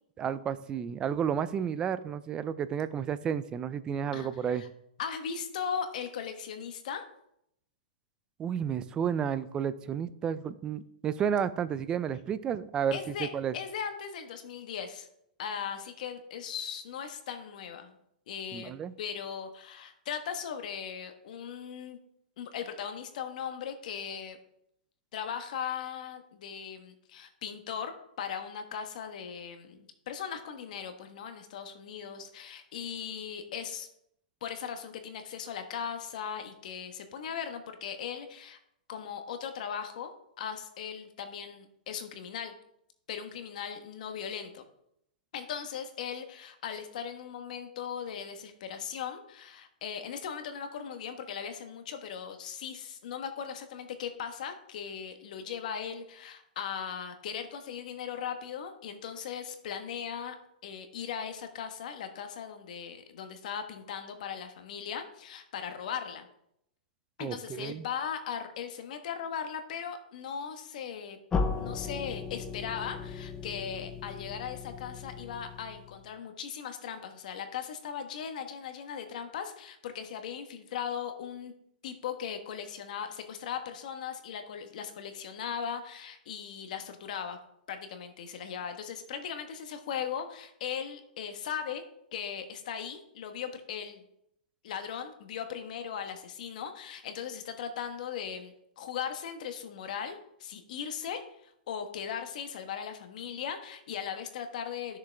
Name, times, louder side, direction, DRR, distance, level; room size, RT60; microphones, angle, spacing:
voice 1, 0.2-4.6 8.4-13.5 18.5-18.9 67.2-67.8, right 8 dB, 15° right, 14 dB, 0.4 m, -31 dB
voice 2, 4.1-4.7 5.0-7.0 12.9-15.1 15.4-17.9 18.3-22.0 22.4-24.4 25.1-33.9 34.4-38.6 38.9-40.1 40.4-42.5 43.1-44.6 45.3-60.3 60.6-66.3 67.2-71.2 71.6-81.5 81.8-87.4 87.7-91.8 92.1-94.0 94.6-105.0, left 7 dB, 55° left, 7 dB, 1.2 m, -38 dB
sound 1, 71.3-76.1, left 4 dB, 15° left, 0.7 m, -36 dB
13.5 x 6.6 x 3.4 m, 0.75 s
hypercardioid pair, 150°, 5 cm